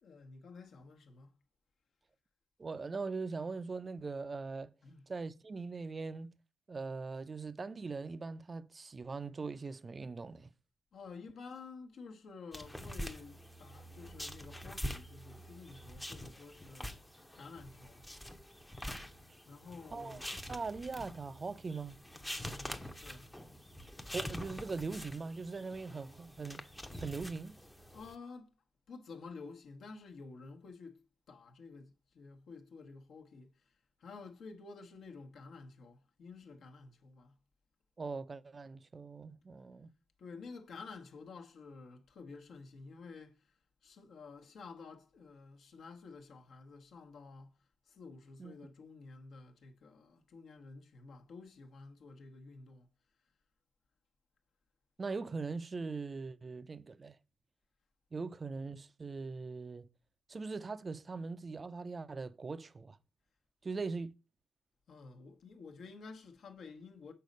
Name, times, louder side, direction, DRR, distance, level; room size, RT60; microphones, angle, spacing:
voice 1, 0.0-1.3 4.8-5.1 10.9-16.9 17.3-18.1 19.5-20.3 22.4-23.3 27.9-28.5 28.9-31.0 31.3-37.4 40.2-43.6 43.8-47.6 47.8-52.9 61.1-61.2 64.9-67.1, left 4 dB, 60° left, 1.1 m, -51 dB
voice 2, 2.6-4.7 5.1-6.3 6.7-10.5 19.9-20.2 20.5-22.0 24.1-26.6 27.0-27.6 38.0-39.9 48.4-48.5 55.0-57.2 58.1-59.9 60.3-63.0 63.6-64.1, right 4 dB, 30° right, 0.5 m, -41 dB
sound 1, 12.5-28.1, equal, 5° left, 0.7 m, -46 dB
6.5 x 4.1 x 5.3 m
supercardioid pair, 75°, 0 cm